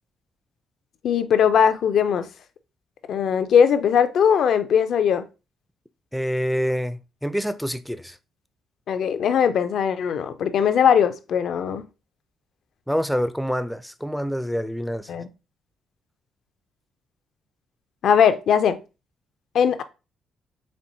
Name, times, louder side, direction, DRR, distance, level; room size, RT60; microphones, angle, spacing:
voice 1, 1.0-2.3 3.1-5.2 8.9-11.8 15.1-15.3 18.0-18.8 19.5-19.8, left 7 dB, 65° left, 0.4 m, -20 dB
voice 2, 6.1-8.2 12.9-15.1, equal, ahead, 0.4 m, -26 dB
4.3 x 3.3 x 2.6 m
cardioid pair, 90°, 0 cm